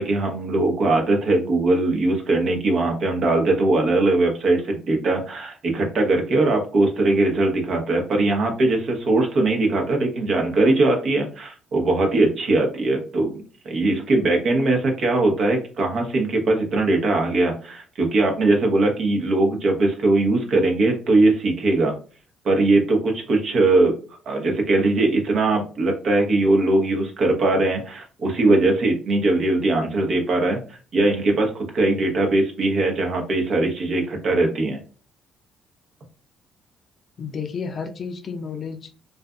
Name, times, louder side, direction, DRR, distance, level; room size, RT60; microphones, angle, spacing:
voice 1, 0.0-13.3 13.6-21.9 22.4-23.9 24.3-34.8, right 2 dB, 60° right, 2 dB, 0.8 m, -20 dB
voice 2, 37.2-39.0, left 5 dB, 50° left, 6 dB, 0.5 m, -31 dB
2.5 x 2.5 x 2.2 m, 0.38 s
hypercardioid pair, 50°, 0 cm